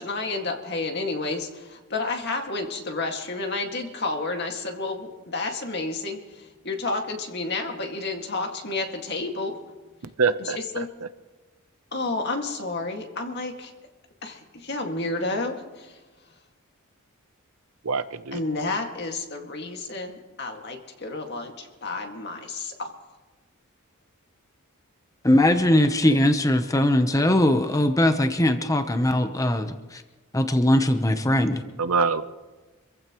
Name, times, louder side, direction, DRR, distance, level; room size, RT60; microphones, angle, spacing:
voice 1, 0.0-9.6 10.4-10.9 11.9-13.7 14.2-16.0 18.3-22.9, left 3 dB, 50° left, 3 dB, 2.1 m, -31 dB
voice 2, 10.2-10.8 17.8-18.4 31.8-32.2, right 5 dB, 85° right, 12 dB, 0.8 m, -24 dB
voice 3, 25.2-30.0 30.3-31.6, left 1 dB, 15° left, 8 dB, 0.9 m, -20 dB
26.5 x 15.0 x 3.1 m, 1.3 s
head